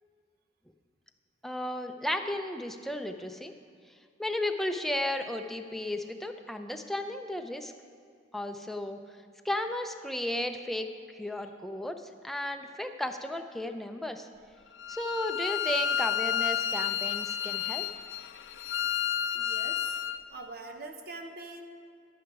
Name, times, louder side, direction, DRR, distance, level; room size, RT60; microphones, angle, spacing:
voice 1, 1.4-3.5 4.2-7.7 8.3-9.0 9.4-10.9 11.1-14.3 14.9-17.9, left 1 dB, ahead, 5 dB, 0.5 m, -34 dB
Bowed string instrument, 14.8-20.2, left 9 dB, 75° left, 0.4 m, -31 dB
voice 2, 19.3-20.0 20.3-21.6, right 3 dB, 60° right, 5 dB, 0.8 m, -43 dB
11.0 x 9.1 x 4.7 m, 2.3 s
head